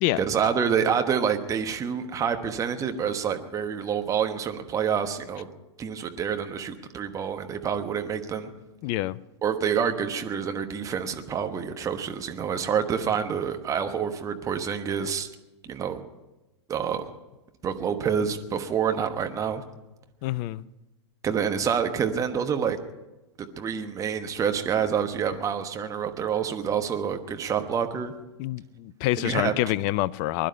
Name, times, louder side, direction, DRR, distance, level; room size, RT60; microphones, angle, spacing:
voice 1, 0.2-5.5 5.8-8.5 9.4-15.3 15.7-16.0 16.7-17.1 17.6-19.6 21.2-22.8 23.4-28.1 29.2-29.5, right 7 dB, 20° right, 7 dB, 1.2 m, -27 dB
voice 2, 8.8-9.2 20.2-20.6 28.4-30.5, left 16 dB, 40° left, 20 dB, 0.4 m, -26 dB
20.5 x 11.5 x 5.6 m, 1.0 s
figure-of-eight pair, 95°, 15 cm